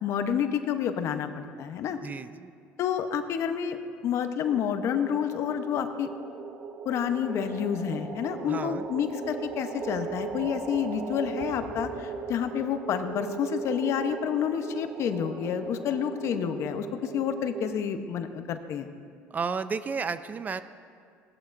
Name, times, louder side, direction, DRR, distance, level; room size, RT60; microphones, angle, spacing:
voice 1, 0.0-2.0 2.8-3.8 4.0-6.1 6.8-18.9, left 8 dB, 60° left, 8 dB, 0.8 m, -29 dB
voice 2, 2.0-2.5 8.5-8.9 19.3-20.6, right 5 dB, 30° right, 13 dB, 0.5 m, -32 dB
sound 1, 4.4-17.7, right 5 dB, 50° right, 1.2 m, -38 dB
17.0 x 12.0 x 2.6 m, 2.2 s
supercardioid pair, 90°, 5 cm